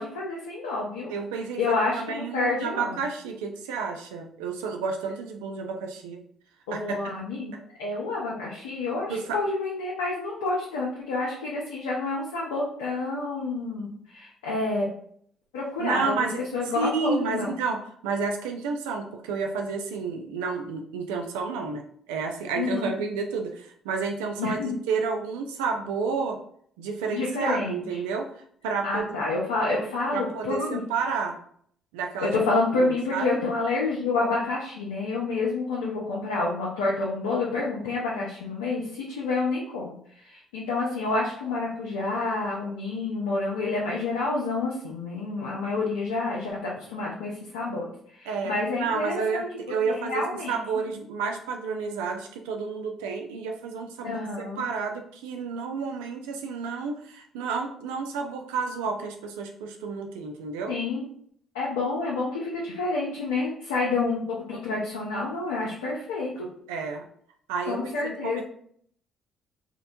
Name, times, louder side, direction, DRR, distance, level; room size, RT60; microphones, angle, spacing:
voice 1, 0.0-1.1 1.6-3.0 6.7-14.9 15.5-16.3 16.5-17.5 22.6-22.9 24.4-24.8 27.1-27.8 28.8-30.8 32.2-50.8 54.0-54.6 60.7-61.0 61.5-66.5 67.7-68.4, left 3 dB, 90° left, -4 dB, 0.4 m, -29 dB
voice 2, 1.1-6.2 6.7-7.0 9.1-9.4 15.8-16.4 16.8-24.6 24.9-26.4 26.8-29.3 30.1-31.4 31.9-32.3 32.7-33.3 48.3-54.2 54.6-60.7 66.7-67.1 67.5-68.4, right 5 dB, 85° right, 3 dB, 0.3 m, -31 dB
2.8 x 2.1 x 2.6 m, 0.63 s
hypercardioid pair, 55°, 0 cm